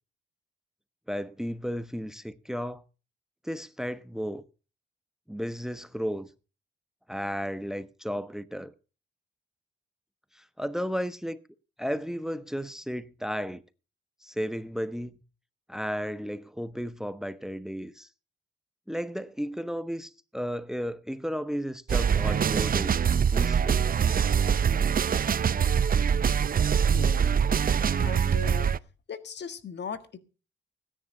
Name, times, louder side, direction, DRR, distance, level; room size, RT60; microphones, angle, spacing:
voice 1, 1.1-2.8 3.4-4.4 5.3-6.3 7.1-8.7 10.3-11.4 11.8-13.6 14.2-15.2 15.7-18.1 18.9-23.0 23.3-23.9, equal, ahead, 1.1 m, -34 dB
sound 1, 21.9-28.8, right 7 dB, 45° right, 0.6 m, -24 dB
voice 2, 26.7-27.4 27.9-28.7 29.1-30.2, left 6 dB, 65° left, 1.7 m, -39 dB
16.5 x 10.0 x 5.5 m
supercardioid pair, 60°, 20 cm